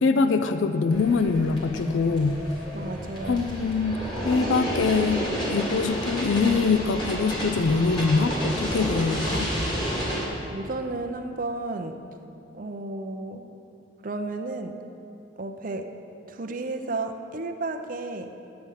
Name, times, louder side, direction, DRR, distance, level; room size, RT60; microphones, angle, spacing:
voice 1, 0.0-2.4 3.2-4.0 4.2-9.5, left 4 dB, 85° left, 8 dB, 0.4 m, -23 dB
sound 1, 0.9-10.3, equal, 25° left, 2.1 m, -30 dB
voice 2, 2.7-3.4 10.5-12.0 12.5-13.5 14.0-14.8 15.4-15.9 16.3-18.3, right 2 dB, 45° right, 6 dB, 0.6 m, -32 dB
9.5 x 7.8 x 5.6 m, 2.8 s
head